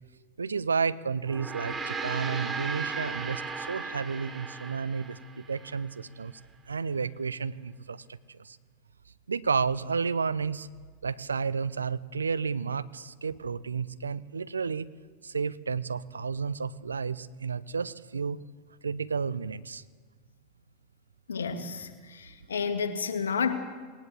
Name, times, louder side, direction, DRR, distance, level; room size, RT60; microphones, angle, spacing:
voice 1, 0.4-6.4 6.7-8.6 9.3-10.7 11.0-14.9 15.2-18.4 18.8-19.8, right 5 dB, 85° right, 18 dB, 0.7 m, -31 dB
Gong, 1.2-5.8, right 4 dB, 25° right, 3.2 m, -36 dB
voice 2, 21.3-23.5, left 6 dB, 75° left, 8 dB, 2.1 m, -31 dB
20.0 x 19.0 x 7.6 m, 1.5 s
figure-of-eight pair, 90°, 0 cm